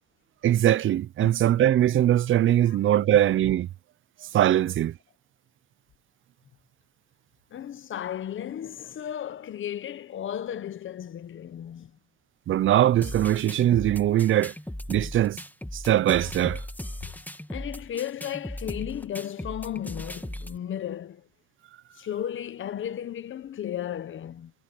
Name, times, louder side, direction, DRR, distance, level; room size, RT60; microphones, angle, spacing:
voice 1, 0.4-3.7 4.3-4.9 12.5-14.5 14.9-15.4 15.7-16.6, right 12 dB, 80° right, 0.5 m, -21 dB
voice 2, 7.5-11.9 17.5-21.3 22.0-24.5, left 10 dB, 80° left, 1.0 m, -34 dB
sound 1, 13.0-20.6, left 1 dB, 10° left, 1.8 m, -38 dB
supercardioid pair, 45°, 20 cm